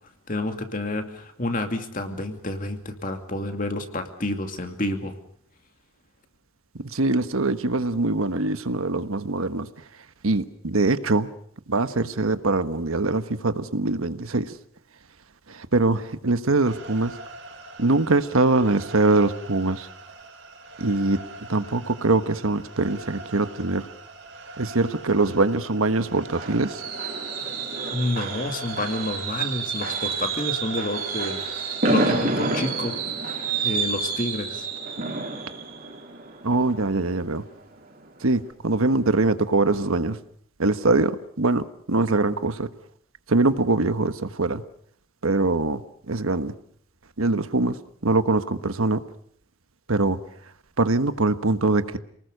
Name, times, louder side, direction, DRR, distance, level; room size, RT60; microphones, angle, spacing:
voice 1, 0.3-5.1 27.9-33.0 33.6-34.7, left 1 dB, 40° left, 5 dB, 2.5 m, -29 dB
voice 2, 6.8-9.7 10.2-11.3 11.7-14.5 15.5-17.1 17.8-19.9 20.8-21.2 21.5-23.9 24.6-26.8 36.4-37.4 38.2-40.2 40.6-42.7 43.3-44.6 45.2-45.8 46.1-46.5 47.2-47.8 48.0-49.0 49.9-50.2 50.8-52.0, right 2 dB, 80° right, 11 dB, 1.3 m, -23 dB
sound 1, 16.7-32.1, right 2 dB, 60° right, 4.1 m, -43 dB
Fireworks, 25.7-37.4 37.8-38.1 38.3-38.4, right 4 dB, 40° right, 4.0 m, -29 dB
28.5 x 19.5 x 6.7 m, 0.65 s
head